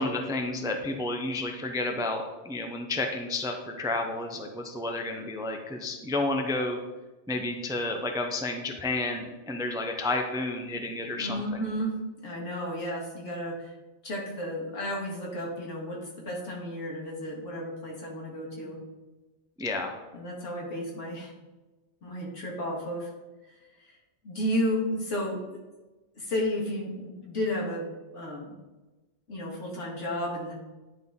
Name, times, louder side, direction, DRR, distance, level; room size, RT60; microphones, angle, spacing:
voice 1, 0.0-6.8 7.3-11.4 19.6-20.0, left 2 dB, 5° right, 4 dB, 0.4 m, -31 dB
voice 2, 11.2-12.0 12.2-13.7 14.0-18.8 20.1-21.3 22.0-23.1 23.5-23.9 24.2-25.4 26.2-27.8 28.1-28.5 29.3-30.5, equal, 85° left, -3 dB, 2.1 m, -32 dB
10.0 x 4.0 x 3.6 m, 1.1 s
omnidirectional pair, 1.2 m